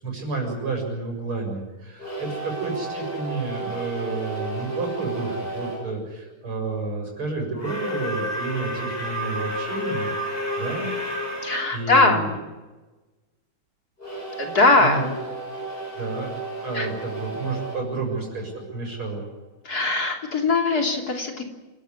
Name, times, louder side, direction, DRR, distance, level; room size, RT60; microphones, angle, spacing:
voice 1, 0.0-10.9 11.7-12.4 14.8-15.1 15.9-16.3 16.6-19.3, right 3 dB, 85° right, 1 dB, 8.1 m, -30 dB
sound 1, 2.0-5.9 7.5-11.7 14.0-18.9, right 1 dB, 25° left, 7.1 m, -32 dB
voice 2, 11.4-12.2 14.4-15.1 16.7-16.9 19.7-21.4, left 3 dB, 45° left, 3 dB, 3.6 m, -20 dB
28.0 x 13.0 x 9.7 m, 1.2 s
omnidirectional pair, 2.3 m